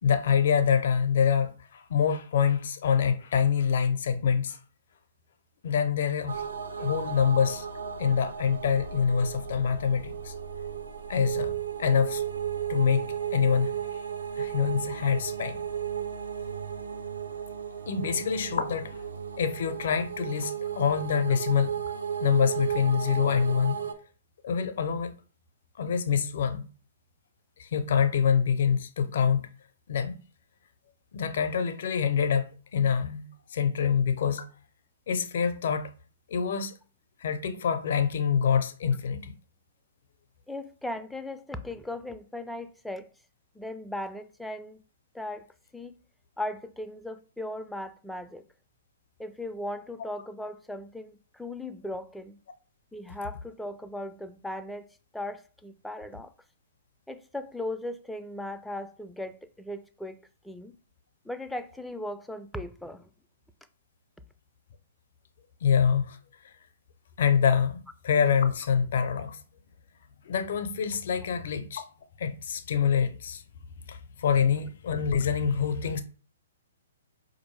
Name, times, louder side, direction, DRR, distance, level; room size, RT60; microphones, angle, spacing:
voice 1, 0.0-4.6 5.6-6.4 6.8-7.7 8.0-10.3 11.1-11.5 11.8-12.2 12.7-13.7 14.4-15.6 17.9-19.0 19.3-21.8 22.2-23.8 24.4-25.1 25.8-26.6 27.6-29.5 29.9-30.2 31.1-34.5 35.1-35.9 36.3-36.7 37.2-39.3 65.6-66.2 67.2-69.4 70.2-71.8 72.2-73.4 73.9-76.0, left 7 dB, 60° left, 0.5 m, -26 dB
sound 1, 6.3-23.9, right 8 dB, 75° right, 0.6 m, -34 dB
voice 2, 40.5-43.1 43.5-44.8 45.1-45.5 45.7-45.9 46.4-48.4 49.2-52.4 52.9-54.9 55.1-56.3 57.1-60.2 60.4-60.8 61.2-63.1, left 1 dB, 5° left, 0.3 m, -37 dB
4.3 x 2.6 x 3.1 m
hypercardioid pair, 125°, 0 cm